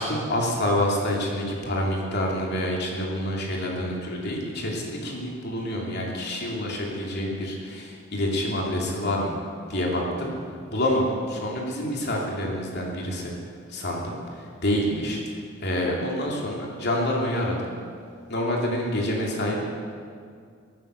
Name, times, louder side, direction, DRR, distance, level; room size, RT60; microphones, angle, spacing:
voice 1, 0.0-9.4 9.7-10.3 10.7-13.3 13.7-15.2 15.6-17.6 18.3-19.8, left 1 dB, 55° left, -2 dB, 2.8 m, -27 dB
21.0 x 9.5 x 6.4 m, 2.2 s
head